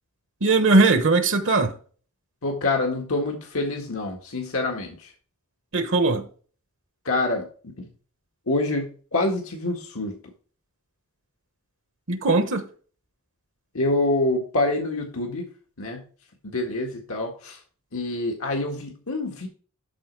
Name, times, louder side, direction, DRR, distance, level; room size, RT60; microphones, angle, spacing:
voice 1, 0.4-1.8 5.7-6.3 12.1-12.7, right 3 dB, 60° right, 1.1 m, -19 dB
voice 2, 2.4-5.1 7.1-7.9 8.5-10.2 13.7-15.5 15.8-16.0 16.4-17.6 17.9-19.5, left 2 dB, 80° left, 1.8 m, -26 dB
12.5 x 4.2 x 4.6 m
head